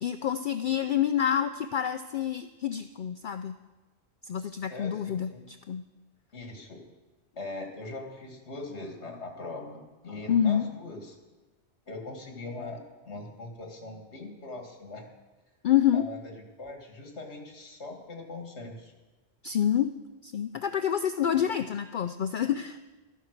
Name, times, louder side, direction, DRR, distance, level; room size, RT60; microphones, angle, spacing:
voice 1, 0.0-3.5 4.2-5.8 10.3-10.7 15.6-16.0 19.4-20.0 20.2-22.8, left 9 dB, 60° left, 10 dB, 0.6 m, -27 dB
voice 2, 4.4-5.4 6.3-6.8 7.4-11.2 11.9-15.1 15.9-18.9, left 2 dB, 75° left, 4 dB, 2.3 m, -41 dB
12.5 x 10.0 x 6.6 m, 1.2 s
omnidirectional pair, 1.2 m